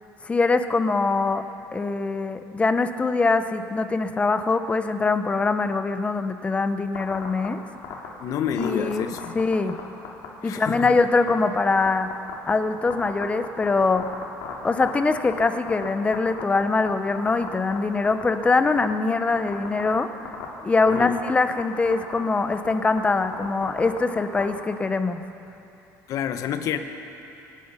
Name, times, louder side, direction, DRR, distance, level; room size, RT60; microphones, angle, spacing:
voice 1, 0.2-1.4 1.7-7.6 8.5-9.1 9.3-9.7 10.4-12.1 12.5-14.0 14.6-20.1 20.6-25.2, left 3 dB, 15° left, 9 dB, 0.7 m, -23 dB
sound 1, 6.9-7.5 7.8-8.1 8.6-9.8 10.0-10.3 10.6-10.9 11.3-11.4 11.8-12.5 12.9-15.9 16.1-16.9 17.1-17.8 18.0-18.9 19.4-19.9 20.2-20.4 20.8-21.3 21.6-21.7 21.9-22.2 22.5-22.7 23.0-24.4, left 10 dB, 80° left, 2.6 m, -33 dB
voice 2, 8.2-9.4 10.4-10.9 20.9-21.2 26.1-26.8, left 8 dB, 55° left, 8 dB, 1.0 m, -28 dB
24.5 x 9.7 x 5.6 m, 2.8 s
cardioid pair, 135°, 7 cm